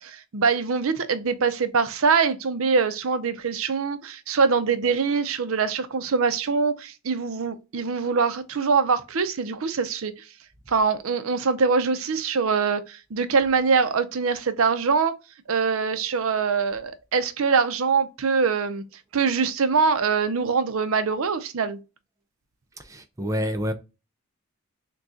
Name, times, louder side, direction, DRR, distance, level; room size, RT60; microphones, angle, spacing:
voice 1, 0.0-10.1 10.7-15.1 15.5-18.8 19.1-21.8, right 5 dB, 70° right, 0.6 m, -23 dB
voice 2, 22.9-23.7, equal, 15° right, 0.4 m, -27 dB
6.1 x 2.3 x 2.6 m
head